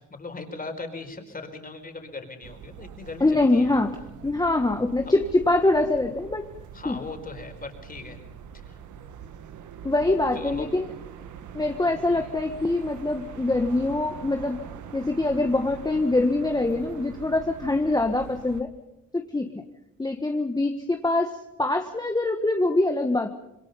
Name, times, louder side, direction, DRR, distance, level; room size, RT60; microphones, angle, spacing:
voice 1, 0.0-3.8 5.0-5.1 6.7-8.2 8.7-8.8 10.3-10.7 12.1-12.3, left 3 dB, 30° left, 5 dB, 4.6 m, -39 dB
sound 1, 2.4-18.6, right 8 dB, 75° right, 1.7 m, -43 dB
voice 2, 3.2-3.9 4.2-6.5 6.8-7.0 9.8-10.9 11.5-14.6 14.9-18.7 19.1-19.5 20.0-23.3, left 2 dB, 15° left, 5 dB, 1.4 m, -24 dB
27.0 x 22.0 x 5.5 m, 0.90 s
cardioid pair, 90°, 30 cm